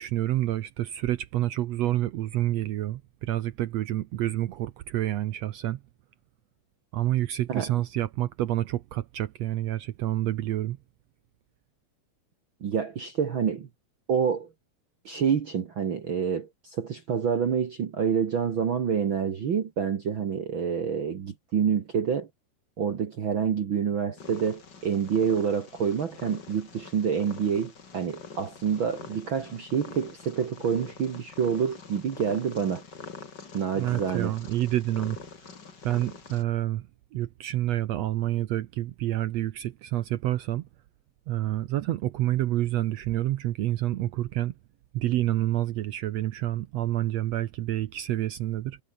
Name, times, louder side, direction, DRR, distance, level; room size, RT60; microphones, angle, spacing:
voice 1, 0.0-5.8 6.9-10.8 33.7-35.2 35.8-40.7 41.3-44.5 44.9-48.8, right 14 dB, 75° right, 1.6 m, -28 dB
voice 2, 12.6-13.7 14.1-14.5 15.0-22.3 22.8-32.8 33.5-34.3, right 7 dB, 50° right, 1.7 m, -27 dB
Purr, 24.2-36.4, left 5 dB, 35° left, 2.8 m, -45 dB
omnidirectional pair, 3.9 m